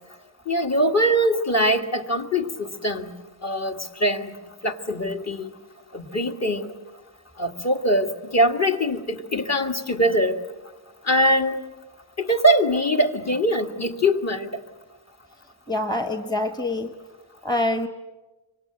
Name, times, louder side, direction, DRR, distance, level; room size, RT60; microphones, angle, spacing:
voice 1, 0.5-3.1 3.4-4.4 4.6-5.5 5.9-6.7 7.4-10.4 11.0-11.6 12.2-14.6, equal, 35° left, 3 dB, 1.9 m, -22 dB
voice 2, 15.7-16.9 17.4-17.9, left 2 dB, 10° left, 7 dB, 1.3 m, -25 dB
26.5 x 24.5 x 7.9 m, 1.1 s
wide cardioid pair, 130°, 47 cm